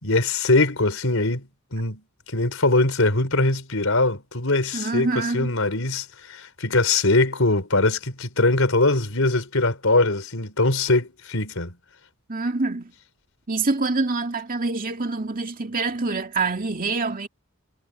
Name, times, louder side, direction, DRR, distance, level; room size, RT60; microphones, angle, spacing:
voice 1, 0.0-11.7, left 2 dB, 80° left, 4.2 m, -22 dB
voice 2, 4.7-5.5 12.3-12.9 13.5-17.3, right 3 dB, 40° right, 2.4 m, -26 dB
head